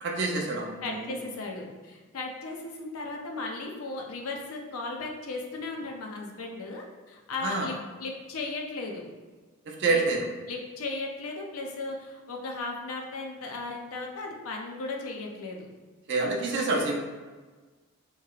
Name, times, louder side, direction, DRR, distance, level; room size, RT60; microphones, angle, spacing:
voice 1, 0.0-1.2 7.4-7.7 9.7-10.3 16.1-17.0, right 3 dB, 50° right, 0 dB, 0.5 m, -27 dB
voice 2, 0.8-9.0 9.9-10.1 10.5-15.6, left 3 dB, 75° left, 1 dB, 0.5 m, -36 dB
3.0 x 2.8 x 2.3 m, 1.3 s
head